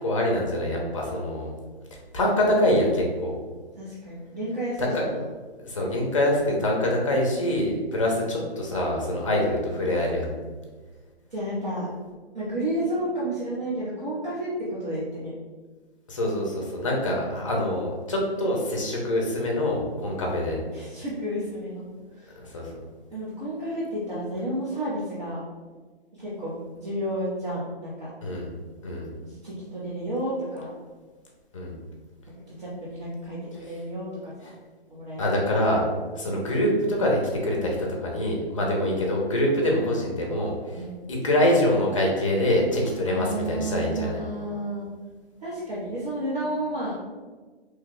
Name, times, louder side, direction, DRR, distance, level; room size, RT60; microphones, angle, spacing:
voice 1, 0.0-1.5 2.1-3.3 4.8-5.0 5.6-10.3 16.1-20.6 22.5-22.7 28.2-28.5 28.8-29.1 31.5-31.7 35.2-35.8 36.2-44.2, left 1 dB, 30° left, -1 dB, 0.6 m, -25 dB
voice 2, 3.8-5.2 11.3-11.9 12.3-15.4 20.7-21.9 22.1-22.3 23.1-25.4 26.1-28.1 29.2-30.7 32.5-34.5 34.9-35.2 36.2-36.5 38.6-38.7 40.7-41.0 43.0-44.9 45.4-47.0, right 1 dB, 45° right, -9 dB, 0.8 m, -31 dB
2.9 x 2.2 x 3.7 m, 1.4 s
hypercardioid pair, 165°, 32 cm